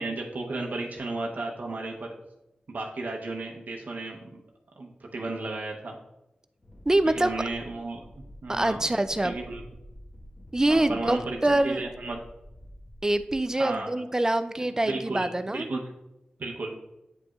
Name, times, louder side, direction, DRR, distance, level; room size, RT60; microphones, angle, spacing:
voice 1, 0.0-2.1 2.7-4.4 4.8-6.0 7.1-8.0 8.4-8.8 9.2-9.6 10.7-12.2 13.5-13.9 14.7-15.8 16.4-16.7, right 2 dB, 65° right, -1 dB, 0.8 m, -34 dB
Wind, 6.6-13.8, equal, 30° left, 1.3 m, -48 dB
voice 2, 6.9-7.3 8.5-9.4 10.5-11.2 11.4-11.8 13.0-15.7, right 1 dB, 20° right, 11 dB, 0.3 m, -24 dB
8.7 x 5.0 x 2.4 m, 0.92 s
wide cardioid pair, 85°, 3 cm